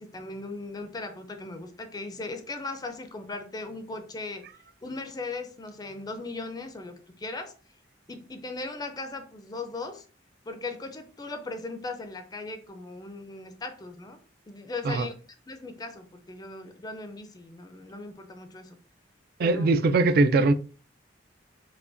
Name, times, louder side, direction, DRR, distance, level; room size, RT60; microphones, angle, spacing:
voice 1, 0.0-4.4 4.8-7.5 8.1-10.0 10.4-14.2 14.5-15.1 15.5-18.8 19.4-19.7, left 3 dB, 20° left, 0.4 m, -38 dB
voice 2, 19.4-20.5, right 3 dB, 55° right, 0.3 m, -21 dB
4.6 x 2.1 x 2.5 m
head